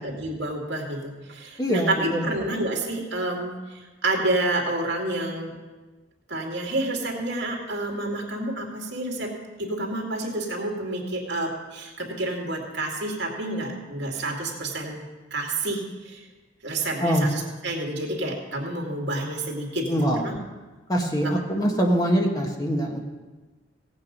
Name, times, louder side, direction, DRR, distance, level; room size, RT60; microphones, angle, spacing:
voice 1, 0.0-5.5 6.3-9.3 9.6-15.1 15.3-16.2 16.6-20.4 21.2-21.4, right 2 dB, 65° right, 0 dB, 2.5 m, -29 dB
voice 2, 1.6-2.3 17.0-17.3 19.9-20.3 20.9-23.0, equal, 20° left, 1 dB, 1.3 m, -23 dB
16.5 x 8.8 x 5.3 m, 1.2 s
head